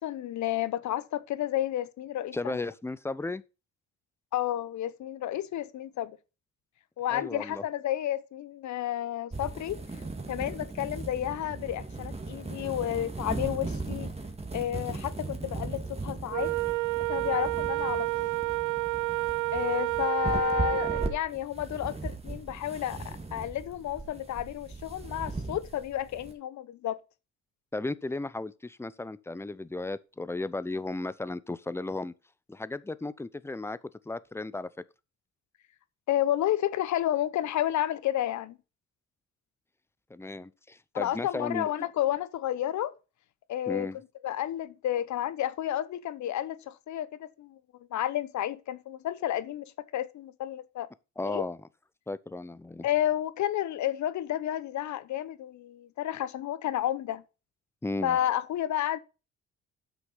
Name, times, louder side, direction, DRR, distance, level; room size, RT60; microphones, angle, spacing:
voice 1, 0.0-2.6 4.3-6.2 7.0-9.8 10.3-14.1 14.5-16.5 17.1-18.3 19.5-27.0 36.1-38.6 40.9-42.9 43.5-43.9 44.2-47.6 47.9-49.6 49.9-50.9 51.2-51.4 52.8-57.2 58.0-59.0, left 12 dB, 70° left, 0.9 m, -31 dB
voice 2, 2.3-3.4 7.1-7.6 27.7-32.1 32.5-33.8 34.1-34.7 40.1-41.9 43.7-44.0 51.2-51.7 52.1-52.9 57.8-58.2, left 2 dB, 10° left, 0.6 m, -35 dB
sound 1, 9.3-26.3, right 3 dB, 20° right, 1.9 m, -38 dB
Wind instrument woodwind instrument, 16.3-21.2, right 19 dB, 75° right, 0.5 m, -30 dB
7.8 x 6.2 x 5.5 m
cardioid pair, 90°, 30 cm